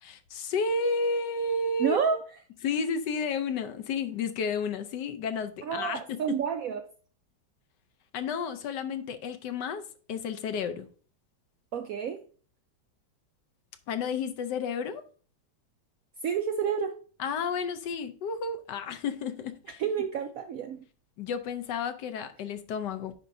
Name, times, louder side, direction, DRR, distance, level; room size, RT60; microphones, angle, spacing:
voice 1, 0.0-2.0 2.6-6.4 8.1-10.9 13.9-15.0 17.2-19.8 21.2-23.1, left 4 dB, 70° left, 1.3 m, -32 dB
voice 2, 1.8-2.2 5.6-6.8 11.7-12.2 16.2-17.0 19.8-20.8, right 7 dB, 70° right, 0.8 m, -29 dB
9.5 x 5.2 x 2.7 m
omnidirectional pair, 2.0 m